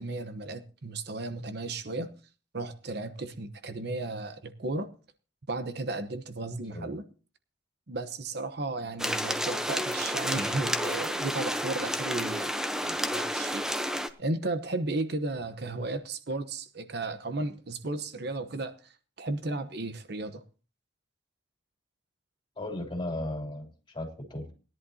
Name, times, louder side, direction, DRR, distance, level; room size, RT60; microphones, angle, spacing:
voice 1, 0.0-2.1 2.5-4.9 5.5-7.0 7.9-12.5 12.8-13.6 14.2-18.7 19.2-20.4, right 2 dB, 55° right, 1.0 m, -34 dB
sound 1, 9.0-14.1, equal, 5° right, 0.8 m, -30 dB
voice 2, 22.6-24.5, left 1 dB, 25° left, 3.0 m, -36 dB
19.5 x 11.0 x 2.8 m
head